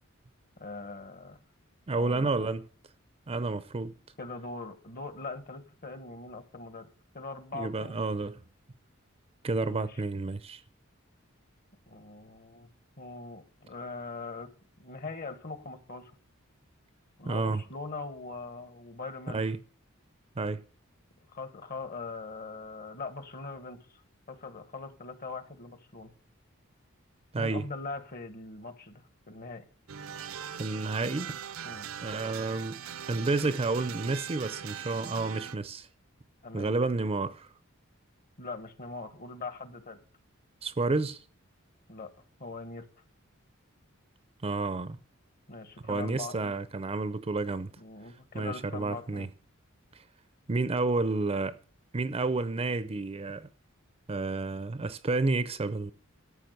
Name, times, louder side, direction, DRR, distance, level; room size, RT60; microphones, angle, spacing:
voice 1, 0.6-1.4 2.0-2.5 4.2-8.2 9.6-10.0 11.9-12.7 13.0-14.5 14.8-16.1 17.2-19.4 21.3-24.0 24.3-26.1 27.3-29.6 31.6-31.9 36.4-36.7 38.4-40.0 41.9-42.1 42.4-42.9 45.5-46.5 47.8-49.3, left 3 dB, 45° left, 1.3 m, -41 dB
voice 2, 1.9-2.6 3.3-4.0 7.5-8.4 9.4-10.6 17.2-17.6 19.3-19.6 20.4-20.6 27.3-27.7 30.6-31.4 32.0-32.8 33.1-35.9 36.5-37.5 40.6-41.2 44.4-45.0 45.8-47.7 48.3-49.3 50.5-51.6 51.9-53.5 54.1-55.9, right 3 dB, 30° right, 0.5 m, -30 dB
sound 1, 29.9-35.6, right 8 dB, 80° right, 0.6 m, -41 dB
13.0 x 5.8 x 7.9 m
head